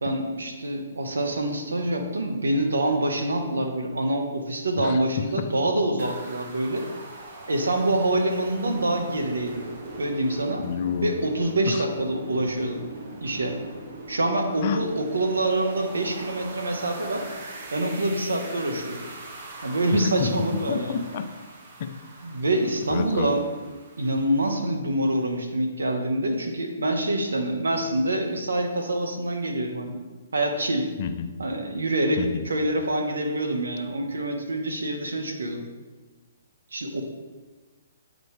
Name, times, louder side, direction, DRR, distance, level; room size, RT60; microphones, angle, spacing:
voice 1, 0.0-6.9 7.5-9.6 10.0-10.6 11.0-12.8 13.2-13.6 14.1-17.2 17.7-19.0 19.6-21.0 22.2-23.4 24.0-30.0 30.3-30.9 31.4-32.2 32.4-35.7 36.7-37.0, right 1 dB, 85° right, 3 dB, 1.2 m, -26 dB
voice 2, 4.8-5.5 10.6-11.1 11.6-11.9 14.6-14.8 19.9-20.3 20.7-21.3 21.8-21.9 22.9-23.3 31.0-31.3 32.2-32.4, left 8 dB, 45° left, 7 dB, 0.6 m, -29 dB
sound 1, 6.0-24.6, right 2 dB, 45° right, 1.2 m, -41 dB
9.3 x 4.0 x 4.8 m, 1.3 s
hypercardioid pair, 145°, 0 cm